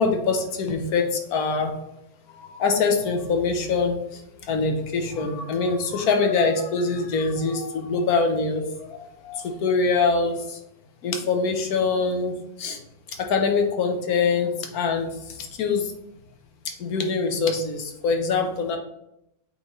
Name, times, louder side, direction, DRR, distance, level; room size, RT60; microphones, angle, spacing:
voice 1, 0.0-1.7 2.4-10.6 11.0-12.8 13.2-15.9 16.6-18.8, left 4 dB, 80° left, 4 dB, 1.3 m, -24 dB
7.9 x 3.8 x 3.1 m, 0.81 s
omnidirectional pair, 1.6 m